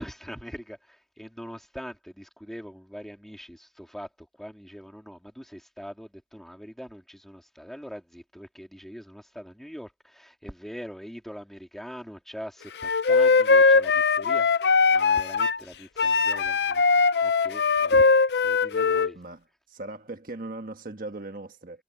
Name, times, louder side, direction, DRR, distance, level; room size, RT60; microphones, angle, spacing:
voice 1, 0.0-16.8 17.2-19.2, equal, ahead, 3.4 m, -42 dB
Wind instrument woodwind instrument, 12.8-15.6 16.0-19.1, left 4 dB, 65° left, 0.5 m, -20 dB
voice 2, 19.1-21.8, right 2 dB, 50° right, 1.4 m, -39 dB
head